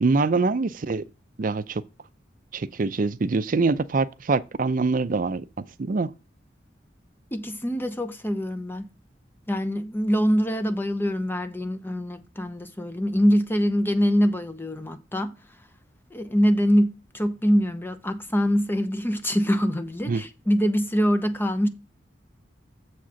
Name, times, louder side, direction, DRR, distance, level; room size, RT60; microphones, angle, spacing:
voice 1, 0.0-1.0 1.4-1.8 2.5-5.5 5.8-6.1 20.1-20.2, right 3 dB, 45° right, 0.5 m, -24 dB
voice 2, 7.3-8.8 9.5-15.3 16.1-21.7, equal, 10° left, 0.7 m, -24 dB
7.2 x 4.2 x 6.3 m
head